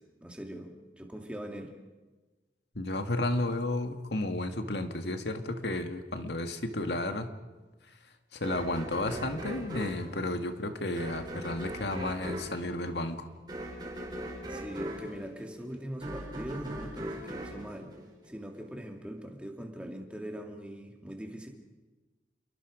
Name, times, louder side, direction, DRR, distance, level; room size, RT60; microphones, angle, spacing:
voice 1, 0.0-1.7 14.5-17.9 18.3-21.5, right 1 dB, 5° right, 2 dB, 2.4 m, -41 dB
voice 2, 2.8-7.3 8.3-13.3, left 2 dB, 75° left, 7 dB, 1.8 m, -32 dB
sound 1, 8.4-18.6, right 1 dB, 25° right, 5.8 m, -40 dB
28.5 x 22.0 x 5.1 m, 1.2 s
head